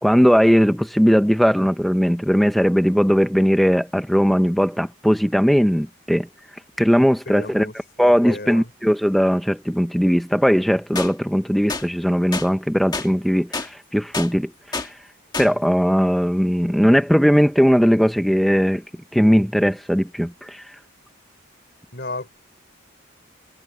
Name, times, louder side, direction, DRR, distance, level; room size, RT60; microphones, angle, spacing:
voice 1, 0.0-6.3 6.8-7.7 8.0-14.9 15.4-18.8 19.1-20.6, equal, ahead, 0.8 m, -18 dB
voice 2, 7.3-8.7 21.9-22.3, left 2 dB, 50° left, 4.8 m, -34 dB
sound 1, 11.0-11.1 11.7-11.9 12.3-12.5 12.9-13.1 13.5-13.7 14.1-14.3 14.7-14.9 15.3-15.5, left 3 dB, 20° left, 1.8 m, -27 dB
head